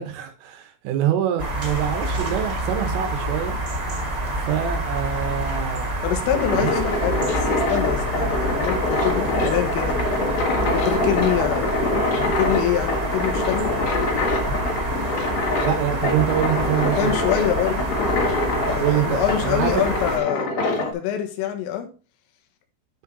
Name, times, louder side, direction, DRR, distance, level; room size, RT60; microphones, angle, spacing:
voice 1, 0.0-3.6 4.5-5.9 6.5-6.7 15.6-17.1 18.7-19.8, right 10 dB, 75° right, 3.8 m, -25 dB
sound 1, 1.4-20.2, right 1 dB, 15° right, 2.6 m, -27 dB
voice 2, 6.0-10.0 10.7-13.7 16.8-17.9 18.7-20.5 20.8-21.9, left 10 dB, 80° left, 4.0 m, -25 dB
sound 2, 6.1-20.9, left 2 dB, 50° left, 2.2 m, -25 dB
10.5 x 5.7 x 4.0 m
omnidirectional pair, 6.0 m